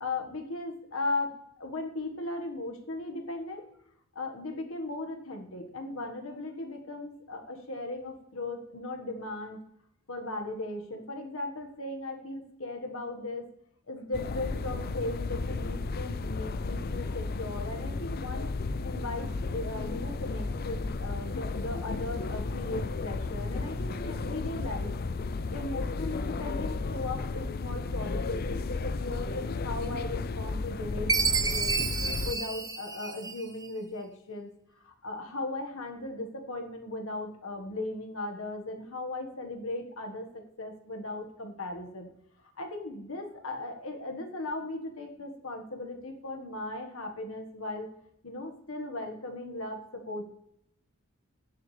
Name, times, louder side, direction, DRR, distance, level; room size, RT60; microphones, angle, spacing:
voice 1, 0.0-3.6 4.1-9.6 10.1-13.4 13.9-18.5 18.8-25.0 25.5-31.8 32.2-34.5 34.8-42.1 42.6-47.9 48.2-50.2, left 2 dB, 70° left, 3 dB, 1.6 m, -37 dB
sound 1, 14.1-32.3, left 3 dB, 45° left, 0.5 m, -33 dB
Chime, 31.1-33.6, right 4 dB, 20° right, 0.6 m, -29 dB
16.5 x 7.2 x 3.3 m, 0.77 s
head